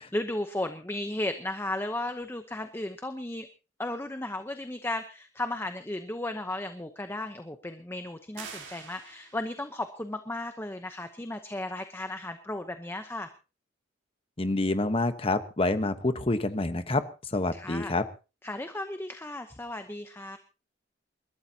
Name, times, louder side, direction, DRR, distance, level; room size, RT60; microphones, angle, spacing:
voice 1, 0.0-3.5 3.8-13.3 17.5-18.0 18.4-20.4, left 1 dB, 10° left, 8 dB, 0.9 m, -35 dB
sound 1, 8.3-9.7, right 6 dB, 80° right, 3.7 m, -45 dB
voice 2, 14.4-17.0 17.3-18.0, left 2 dB, 30° left, 10 dB, 1.2 m, -27 dB
28.5 x 13.0 x 2.9 m, 0.32 s
head